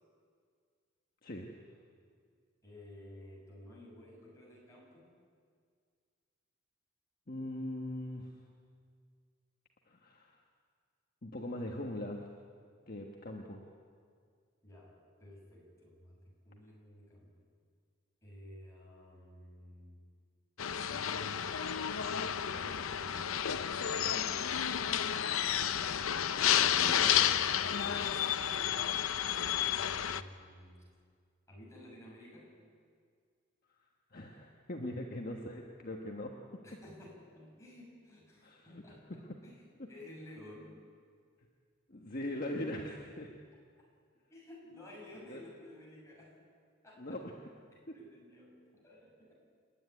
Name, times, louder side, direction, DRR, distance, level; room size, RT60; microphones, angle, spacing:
voice 1, 1.2-1.5 7.3-8.3 9.9-10.4 11.2-12.2 12.9-13.6 26.3-27.2 34.1-36.6 38.4-39.2 39.8-39.9 41.9-43.3 45.3-45.4 47.0-47.3 47.9-48.0, left 1 dB, 45° left, 0 dB, 1.4 m, -41 dB
voice 2, 2.6-5.1 14.6-17.3 18.2-20.0 20.9-24.5 27.5-28.9 29.7-30.8 31.5-32.5 36.6-40.8 44.3-46.4 46.8-47.2 47.7-49.3, left 1 dB, 15° left, -4 dB, 6.8 m, -54 dB
sound 1, 20.6-30.2, left 9 dB, 85° left, 0.7 m, -31 dB
29.5 x 10.0 x 9.7 m, 2.1 s
head